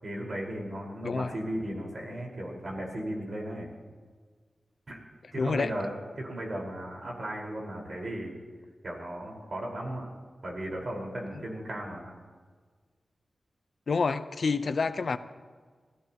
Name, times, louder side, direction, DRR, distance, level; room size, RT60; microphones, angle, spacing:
voice 1, 0.0-3.7 4.9-5.0 5.3-5.9 6.2-8.3 8.8-10.1 10.4-12.1, right 1 dB, 50° right, -1 dB, 4.8 m, -36 dB
voice 2, 5.4-5.7 13.9-15.2, left 4 dB, 65° left, 11 dB, 0.7 m, -28 dB
27.0 x 17.5 x 3.0 m, 1.5 s
wide cardioid pair, 95°, 0 cm